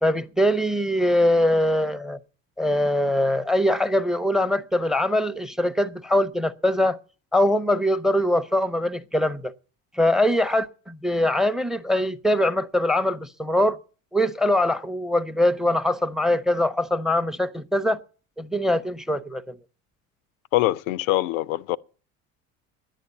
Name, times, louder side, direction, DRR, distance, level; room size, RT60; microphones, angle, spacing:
voice 1, 0.0-2.2 2.6-7.0 7.3-9.5 9.9-13.8 14.1-18.0 18.4-19.6, left 1 dB, ahead, 0.6 m, -22 dB
voice 2, 20.5-21.8, left 16 dB, 75° left, 0.5 m, -23 dB
10.5 x 9.0 x 8.3 m
hypercardioid pair, 60°, 41 cm